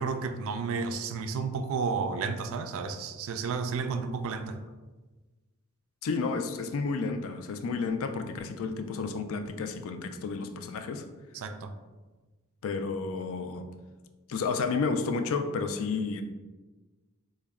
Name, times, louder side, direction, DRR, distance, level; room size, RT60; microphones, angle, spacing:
voice 1, 0.0-4.6 11.3-11.7, right 5 dB, 65° right, 8 dB, 0.3 m, -32 dB
voice 2, 6.0-11.0 12.6-13.7 14.3-16.2, left 4 dB, 65° left, 8 dB, 0.3 m, -31 dB
3.9 x 2.1 x 3.5 m, 1.2 s
head